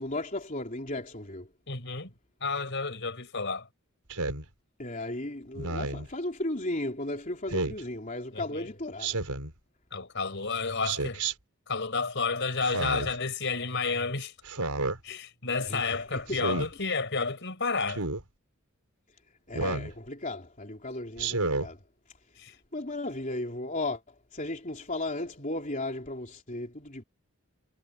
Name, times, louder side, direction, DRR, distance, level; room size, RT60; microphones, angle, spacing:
voice 1, 0.0-1.5 4.8-9.2 15.6-16.4 19.5-21.8 22.7-27.0, left 2 dB, 35° left, 3.8 m, -35 dB
voice 2, 1.7-2.1 2.4-3.7 8.3-8.7 9.9-11.2 11.7-14.3 15.0-18.0 22.4-22.5, left 4 dB, 55° left, 4.9 m, -31 dB
Speech synthesizer, 4.1-4.4 5.6-6.1 7.5-7.8 9.0-9.5 10.8-11.3 12.6-13.2 14.5-15.0 16.3-16.7 17.9-18.2 19.5-19.9 21.2-21.7, right 3 dB, 90° right, 4.8 m, -31 dB
head